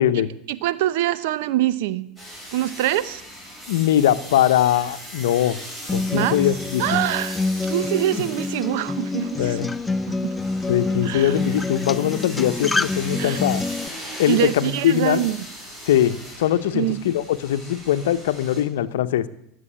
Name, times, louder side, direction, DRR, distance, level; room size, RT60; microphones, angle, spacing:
voice 1, 0.1-2.1 2.5-3.2 6.1-6.5 6.8-9.6 10.1-10.4 11.0-11.3 13.2-13.4 14.3-15.4 16.7-17.0, right 14 dB, 75° right, 0.8 m, -24 dB
sound 1, 2.2-18.6, equal, 15° right, 7.6 m, -39 dB
voice 2, 3.7-5.6 5.9-6.8 9.4-9.7 10.7-13.6 14.2-15.3 15.8-19.3, left 11 dB, 85° left, 0.8 m, -21 dB
Acoustic guitar, 5.9-13.9, left 3 dB, 15° left, 0.5 m, -27 dB
12.5 x 7.8 x 9.8 m
supercardioid pair, 100°, 0 cm